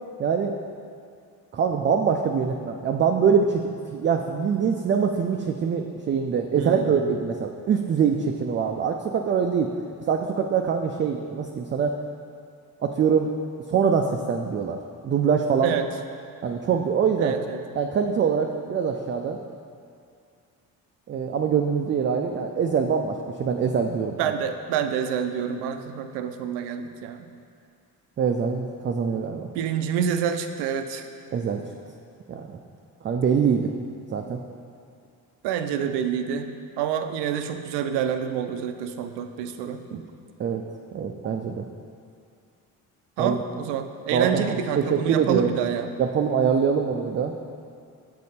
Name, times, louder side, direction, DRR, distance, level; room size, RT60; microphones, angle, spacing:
voice 1, 0.2-0.5 1.5-9.7 10.1-12.0 12.8-13.3 13.7-15.8 16.4-17.3 17.7-19.4 21.1-24.3 28.2-29.5 31.3-31.6 32.3-32.6 33.0-33.7 34.1-34.4 40.4-40.6 40.9-41.6 43.2-43.4 44.1-45.5 46.0-47.3, right 6 dB, 30° right, 3 dB, 0.4 m, -24 dB
voice 2, 6.6-6.9 15.6-15.9 17.2-17.6 24.2-27.3 29.5-31.0 35.4-40.1 43.2-45.9, right 8 dB, 85° right, 7 dB, 0.5 m, -28 dB
6.6 x 4.1 x 4.2 m, 2.4 s
supercardioid pair, 70°, 40 cm